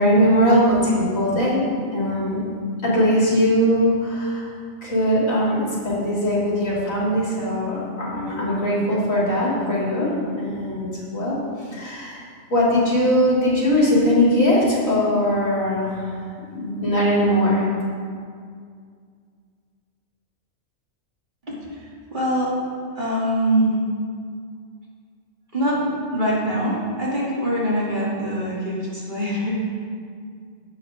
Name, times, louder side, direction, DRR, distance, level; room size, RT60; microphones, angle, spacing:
voice 1, 0.0-2.4 2.8-4.5 4.8-10.9 11.1-11.4 11.7-12.2 12.5-16.1 16.5-17.7, equal, 85° left, -7 dB, 3.8 m, -20 dB
voice 2, 21.4-22.5 22.9-23.9 25.5-29.8, equal, 35° right, -7 dB, 3.2 m, -24 dB
16.5 x 8.7 x 3.8 m, 2.1 s
omnidirectional pair, 1.4 m